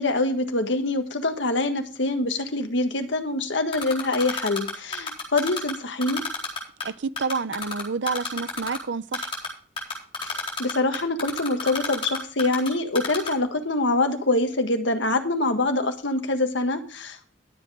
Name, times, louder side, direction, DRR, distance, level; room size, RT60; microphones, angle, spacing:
voice 1, 0.0-6.3 10.2-17.3, left 2 dB, 70° left, 1.5 m, -25 dB
Typing, 3.7-5.7 6.0-6.8 7.2-8.8 9.1-9.5 9.8-12.7 12.9-13.3, left 5 dB, 30° left, 4.4 m, -29 dB
voice 2, 6.8-9.3, right 4 dB, 70° right, 0.6 m, -29 dB
12.5 x 8.0 x 4.9 m
head